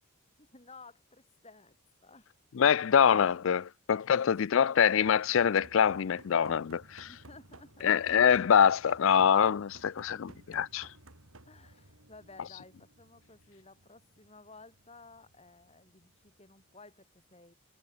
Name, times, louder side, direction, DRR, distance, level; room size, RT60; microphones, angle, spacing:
voice 1, 0.4-1.8 2.0-2.4 7.1-8.4 11.5-17.5, left 3 dB, 30° left, 6.4 m, -55 dB
voice 2, 2.5-7.1 7.8-10.9, left 8 dB, 60° left, 0.4 m, -25 dB
sound 1, 4.9-16.8, right 1 dB, 65° right, 4.2 m, -56 dB
head